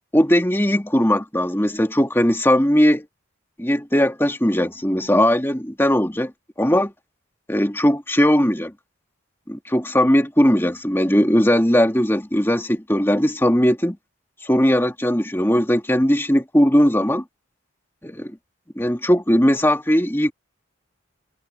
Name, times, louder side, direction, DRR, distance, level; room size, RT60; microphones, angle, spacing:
voice 1, 0.1-3.0 3.6-6.3 6.6-6.9 7.5-8.7 9.5-14.0 14.4-17.2 18.0-18.4 18.8-20.3, equal, 10° left, 2.4 m, -19 dB
head